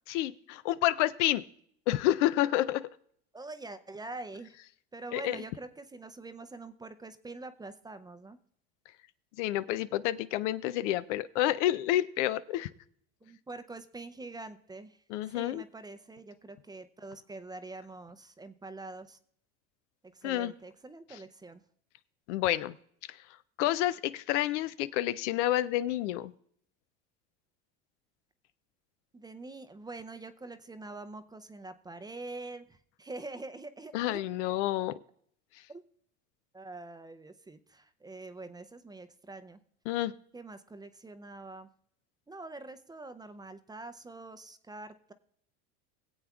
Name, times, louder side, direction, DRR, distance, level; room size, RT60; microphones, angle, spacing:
voice 1, 0.1-1.4 1.9-2.8 5.1-5.4 9.4-12.7 15.1-15.6 20.2-20.5 22.3-22.8 23.6-26.3 33.9-34.9 39.9-40.1, left 14 dB, 80° left, 15 dB, 0.5 m, -29 dB
voice 2, 3.3-4.6 4.9-8.4 13.2-19.2 20.0-21.6 29.1-34.2 35.7-35.8 36.5-39.6 40.3-41.7 42.3-45.1, right 2 dB, 10° right, 11 dB, 0.5 m, -45 dB
22.0 x 7.9 x 2.4 m, 0.65 s
supercardioid pair, 95°, 35 cm